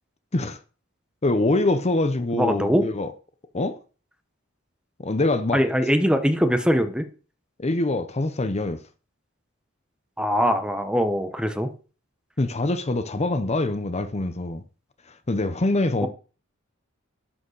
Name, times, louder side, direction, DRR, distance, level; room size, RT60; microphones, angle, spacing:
voice 1, 1.2-3.1 3.5-3.8 5.0-5.6 7.6-8.8 12.4-14.6 15.1-16.1, left 2 dB, 30° left, 0.8 m, -24 dB
voice 2, 2.3-2.9 5.5-7.1 10.2-11.7 16.0-16.1, equal, 5° right, 0.9 m, -22 dB
11.5 x 5.0 x 6.5 m
head